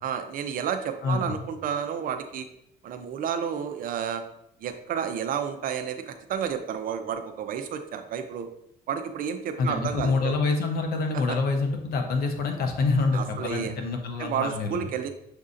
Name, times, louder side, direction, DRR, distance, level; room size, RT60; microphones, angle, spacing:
voice 1, 0.0-2.5 2.8-4.2 4.6-8.5 8.9-10.4 11.3-11.4 13.1-13.7 14.2-15.1, right 8 dB, 55° right, 8 dB, 0.5 m, -31 dB
voice 2, 1.0-1.4 9.6-14.9, left 3 dB, 65° left, 4 dB, 0.8 m, -26 dB
6.4 x 2.7 x 2.4 m, 0.78 s
cardioid pair, 110°, 17 cm